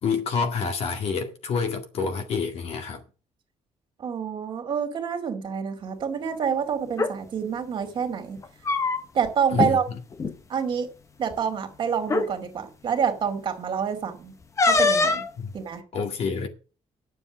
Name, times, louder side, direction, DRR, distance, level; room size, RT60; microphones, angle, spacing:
voice 1, 0.0-3.0 9.5-9.8 15.4-15.5 15.9-16.5, left 5 dB, 55° left, 2.1 m, -28 dB
voice 2, 4.0-8.4 9.1-9.9 10.5-10.9 11.2-14.3 14.7-15.2 15.5-15.8, right 7 dB, 40° right, 2.5 m, -27 dB
sound 1, 6.9-7.1 8.4-9.3 9.6-9.7 10.1-10.3 11.3-11.4 12.0-12.3 14.6-15.3, left 3 dB, 25° left, 0.9 m, -22 dB
9.9 x 7.3 x 6.3 m
cardioid pair, 155°, 12 cm